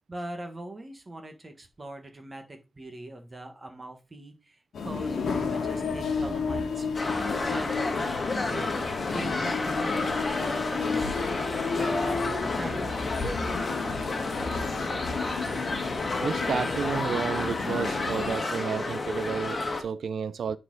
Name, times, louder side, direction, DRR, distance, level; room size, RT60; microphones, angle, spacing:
voice 1, 0.1-6.9 7.4-8.1 8.4-8.8 9.0-11.4 11.8-13.4, right 1 dB, 25° right, 1.4 m, -41 dB
sound 1, 4.7-18.3, left 4 dB, 85° left, 1.6 m, -32 dB
sound 2, 6.9-19.8, left 3 dB, 30° left, 1.5 m, -31 dB
voice 2, 16.2-20.6, right 6 dB, 65° right, 0.5 m, -31 dB
9.2 x 4.4 x 3.9 m
wide cardioid pair, 160°, 0 cm